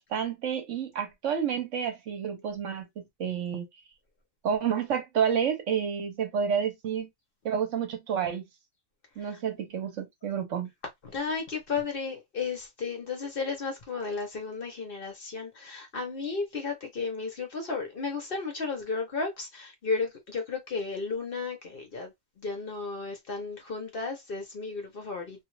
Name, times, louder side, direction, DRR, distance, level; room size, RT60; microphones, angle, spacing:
voice 1, 0.0-3.7 4.4-7.1 7.4-8.4 9.2-10.7, right 7 dB, 65° right, 1.0 m, -30 dB
voice 2, 11.0-25.4, left 4 dB, 50° left, 0.9 m, -34 dB
2.5 x 2.4 x 2.9 m
omnidirectional pair, 1.4 m